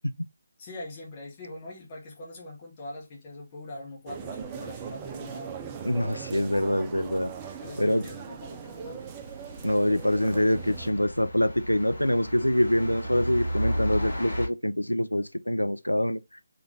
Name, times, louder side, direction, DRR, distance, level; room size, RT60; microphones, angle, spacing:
voice 1, 0.6-5.5 6.5-6.8 7.4-9.1, left 2 dB, 25° left, 1.6 m, -42 dB
sound 1, 4.1-10.9, right 7 dB, 20° right, 0.5 m, -40 dB
voice 2, 5.8-7.3 7.8-8.0 9.6-16.2, left 1 dB, 90° left, 0.5 m, -25 dB
sound 2, 6.3-6.4 9.0-14.5, equal, 70° left, 2.3 m, -34 dB
3.9 x 3.4 x 3.2 m
figure-of-eight pair, 150°, 0 cm